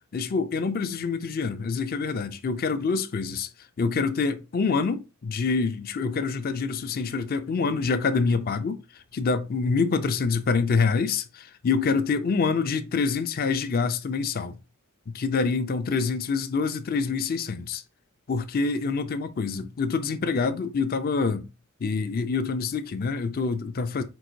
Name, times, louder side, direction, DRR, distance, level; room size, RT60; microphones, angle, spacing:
voice 1, 0.1-3.5 3.8-14.5 15.1-17.8 18.3-21.5 21.8-24.0, left 4 dB, 45° left, 0.4 m, -26 dB
4.6 x 4.2 x 2.6 m
head